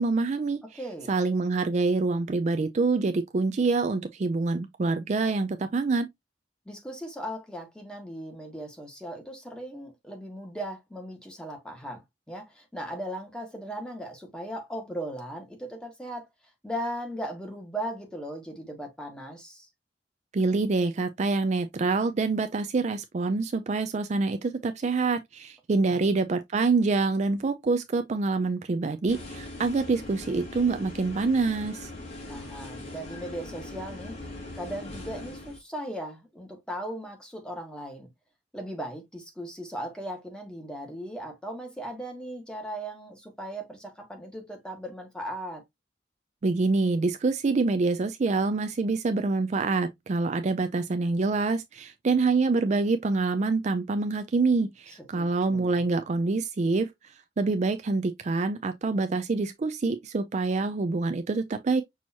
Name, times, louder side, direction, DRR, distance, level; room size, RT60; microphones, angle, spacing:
voice 1, 0.0-0.6 1.1-6.1 20.3-31.9 46.4-56.9 57.4-61.8, right 3 dB, 40° right, 0.4 m, -26 dB
voice 2, 0.7-1.1 6.6-16.3 16.6-19.7 25.8-26.0 32.3-34.2 34.5-38.1 38.5-45.6 55.1-55.7, right 1 dB, 5° left, 1.4 m, -38 dB
sound 1, 29.1-35.6, left 2 dB, 35° left, 2.0 m, -41 dB
6.2 x 2.9 x 2.8 m
head